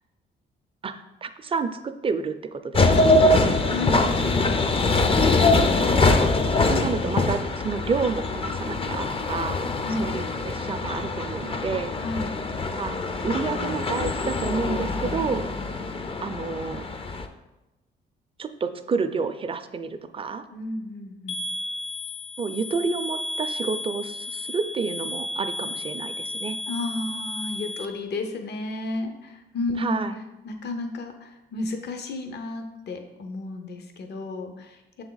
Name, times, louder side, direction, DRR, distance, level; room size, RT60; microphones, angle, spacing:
voice 1, 0.8-3.1 5.8-6.2 6.6-9.6 10.0-11.9 12.8-13.0 13.2-15.5 16.2-16.8 18.4-20.4 22.4-26.6 29.8-30.2, right 5 dB, 30° right, 9 dB, 0.5 m, -29 dB
sound 1, 2.7-17.3, left 2 dB, 30° left, 0.5 m, -23 dB
voice 2, 3.0-4.0 9.8-10.0 12.0-12.3 20.5-21.4 26.7-30.0 30.4-35.0, left 2 dB, 55° left, 5 dB, 0.8 m, -32 dB
sound 2, 21.3-27.9, left 1 dB, 90° left, 0.6 m, -33 dB
6.8 x 3.5 x 3.9 m, 1.0 s
cardioid pair, 90°, 20 cm